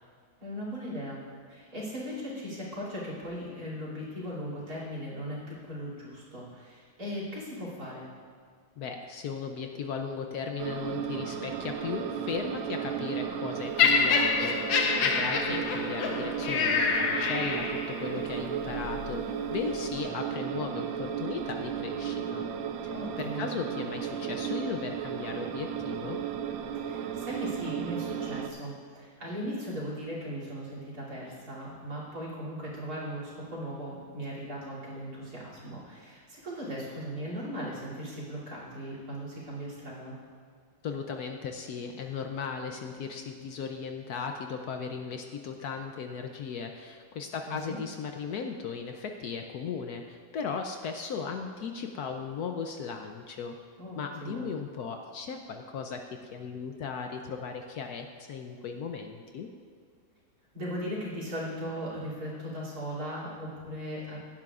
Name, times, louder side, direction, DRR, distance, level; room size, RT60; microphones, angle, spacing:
voice 1, 0.4-1.2 1.5-8.1 15.2-15.6 22.9-23.4 26.8-40.1 47.5-47.8 53.8-54.5 60.5-64.2, equal, 50° right, -6 dB, 3.4 m, -38 dB
voice 2, 8.8-22.4 22.8-26.2 40.8-53.6 54.0-56.0 56.3-59.5, left 5 dB, 70° left, 4 dB, 1.0 m, -37 dB
sound 1, 10.6-28.5, right 8 dB, 85° right, 1.4 m, -34 dB
Laughter, 13.8-18.0 18.8-19.0, left 5 dB, 85° left, 1.7 m, -26 dB
16.5 x 11.0 x 2.4 m, 2.1 s
omnidirectional pair, 2.1 m